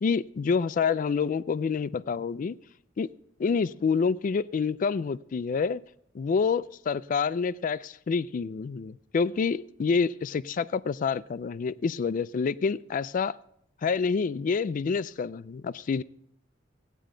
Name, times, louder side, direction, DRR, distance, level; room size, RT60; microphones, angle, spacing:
voice 1, 0.0-2.5 3.0-3.1 3.4-5.8 6.1-13.4 13.8-16.0, left 5 dB, 45° left, 0.3 m, -27 dB
16.5 x 9.2 x 3.8 m
head